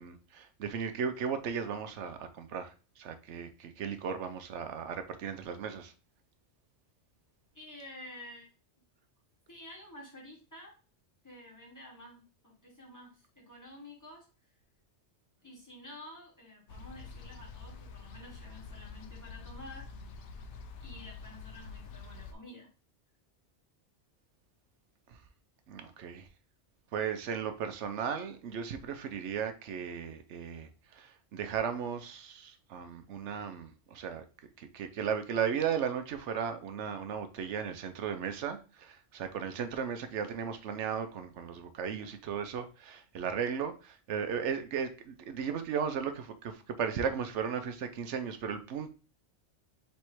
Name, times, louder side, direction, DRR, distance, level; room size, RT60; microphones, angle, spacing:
voice 1, 0.0-5.9 25.7-26.3 26.9-34.2 34.6-48.9, right 7 dB, 90° right, 1.0 m, -36 dB
voice 2, 7.5-8.5 9.5-10.7 11.2-14.3 15.4-19.9 20.8-22.7, left 1 dB, 15° left, 1.8 m, -50 dB
sound 1, 16.7-22.3, left 4 dB, 90° left, 1.0 m, -47 dB
3.6 x 3.2 x 4.5 m
omnidirectional pair, 1.2 m